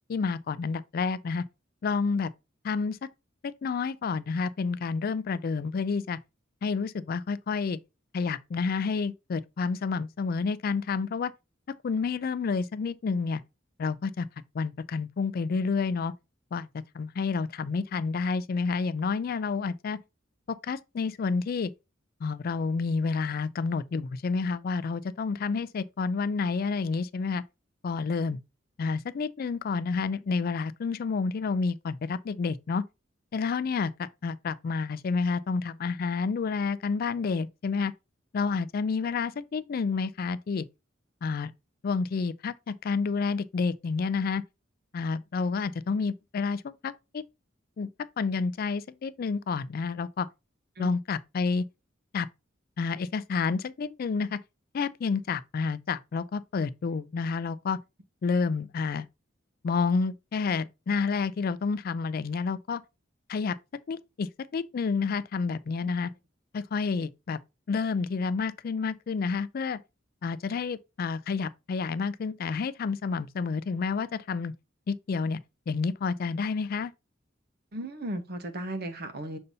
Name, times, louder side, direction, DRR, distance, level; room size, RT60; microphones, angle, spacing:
voice 1, 0.1-1.4 1.8-2.3 2.6-3.0 3.4-6.2 6.6-7.8 8.1-11.3 11.8-13.4 13.8-14.3 14.5-16.1 16.5-16.7 16.9-20.0 20.5-21.7 22.2-27.4 27.8-28.4 28.8-32.8 33.3-37.9 38.3-40.7 41.2-41.5 41.8-44.4 44.9-47.2 47.8-47.9 48.2-50.3 50.8-51.6 52.1-52.3 52.8-54.4 54.7-57.8 58.2-59.1 59.6-62.8 63.3-63.6 63.9-66.1 66.5-67.4 67.7-69.8 70.2-74.5 74.9-75.4 75.7-76.9, left 4 dB, 50° left, 0.3 m, -29 dB
voice 2, 77.7-79.4, right 1 dB, 55° right, 1.0 m, -35 dB
6.6 x 5.4 x 2.7 m
head